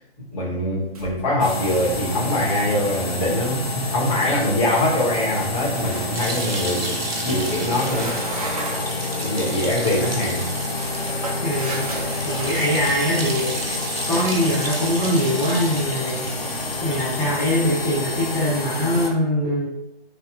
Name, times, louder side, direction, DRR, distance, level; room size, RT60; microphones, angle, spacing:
voice 1, 0.3-8.5 8.7-8.9 9.2-10.4, left 1 dB, 35° left, -6 dB, 1.2 m, -23 dB
sound 1, 0.9-1.4 1.8-2.2 5.3-6.6 7.3-9.0 9.7-13.5, right 2 dB, 40° right, 0.6 m, -34 dB
sound 2, 1.4-19.1, left 2 dB, 80° left, 0.7 m, -28 dB
sound 3, 6.1-17.8, right 2 dB, 75° right, 0.8 m, -33 dB
voice 2, 11.4-11.8 12.2-13.5 14.0-16.3 16.8-19.7, left 1 dB, ahead, -14 dB, 1.4 m, -22 dB
3.3 x 2.4 x 2.4 m, 0.81 s
figure-of-eight pair, 130°, 30 cm